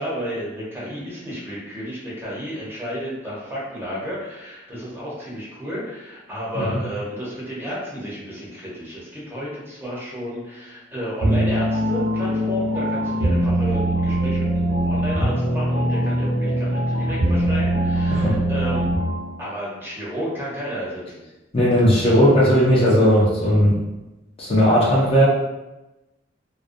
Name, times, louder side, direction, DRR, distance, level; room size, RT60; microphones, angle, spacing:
voice 1, 0.0-18.9 19.4-21.2, equal, 10° right, -7 dB, 0.7 m, -32 dB
sound 1, 11.2-19.3, right 1 dB, 70° right, 0.8 m, -22 dB
voice 2, 21.5-23.8 24.4-25.3, equal, 30° left, -6 dB, 0.5 m, -17 dB
2.4 x 2.2 x 2.5 m, 1.0 s
head